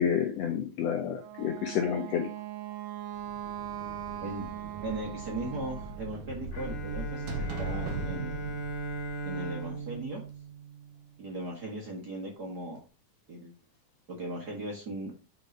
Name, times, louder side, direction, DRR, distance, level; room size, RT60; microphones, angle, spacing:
voice 1, 0.0-2.3, left 8 dB, 75° left, 1.6 m, -29 dB
Wind instrument woodwind instrument, 1.1-6.1, right 12 dB, 70° right, 2.0 m, -40 dB
sound 1, 3.2-9.9, right 2 dB, 90° right, 2.6 m, -40 dB
voice 2, 4.8-8.6 9.3-10.2 11.2-12.8 13.3-13.5 14.1-15.1, right 2 dB, 40° right, 1.7 m, -38 dB
Bowed string instrument, 6.5-11.4, right 3 dB, 55° left, 2.9 m, -38 dB
6.8 x 4.0 x 5.2 m
omnidirectional pair, 3.6 m